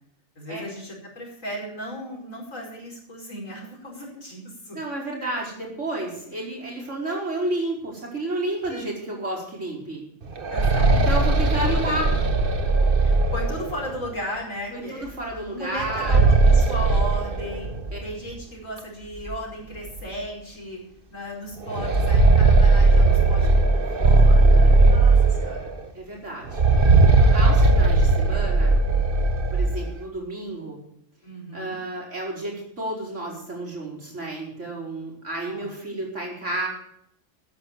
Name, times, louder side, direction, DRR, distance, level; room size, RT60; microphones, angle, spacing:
voice 1, 0.4-4.8 8.7-8.9 10.5-11.2 11.6-11.8 12.1-12.2 13.0-15.1 15.5-17.7 18.0-20.8 21.1-25.7 31.2-31.8 35.5-36.0, equal, 75° left, -1 dB, 5.5 m, -36 dB
voice 2, 4.7-10.0 10.9-12.1 14.7-16.2 17.9-18.0 26.0-28.7 29.5-30.8 31.5-36.7, right 2 dB, 65° right, -2 dB, 5.4 m, -31 dB
sound 1, 10.2-14.0 15.8-18.0 18.3-18.4 19.3-19.4 19.9-20.0 21.6-25.8 26.5-29.9, right 3 dB, 45° right, 1.5 m, -18 dB
13.5 x 9.7 x 7.1 m, 0.74 s
omnidirectional pair, 1.4 m